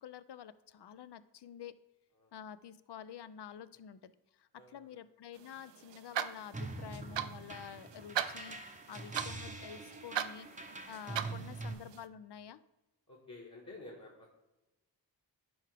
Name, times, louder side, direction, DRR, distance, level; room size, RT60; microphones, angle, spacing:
voice 1, 0.0-1.7 2.3-10.5 10.9-12.6, left 9 dB, 60° left, 15 dB, 0.5 m, -49 dB
voice 2, 4.5-5.0 6.8-7.3 8.9-9.2 11.4-11.8 13.1-14.3, left 2 dB, 40° left, -5 dB, 1.7 m, -53 dB
sound 1, 5.4-12.1, right 9 dB, 70° right, 0.5 m, -41 dB
sound 2, 6.5-11.7, right 2 dB, 15° right, 0.7 m, -44 dB
10.0 x 3.6 x 3.4 m, 1.0 s
cardioid pair, 45°, 46 cm